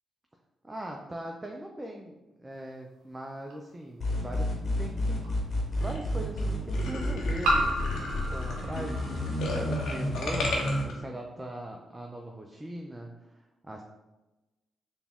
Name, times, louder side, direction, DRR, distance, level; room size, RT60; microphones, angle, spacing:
voice 1, 0.6-2.1 2.4-5.3 5.8-13.8, right 1 dB, 20° right, 1 dB, 0.4 m, -41 dB
sound 1, 3.5-3.6 5.2-5.3 7.4-9.9, right 1 dB, 80° right, 0.7 m, -31 dB
sound 2, 4.0-10.8, left 1 dB, 55° left, 1.0 m, -30 dB
sound 3, 5.8-6.0 6.4-6.5 6.7-10.9, left 2 dB, 75° left, 0.8 m, -34 dB
4.0 x 2.3 x 3.5 m, 1.1 s
supercardioid pair, 55°, 0 cm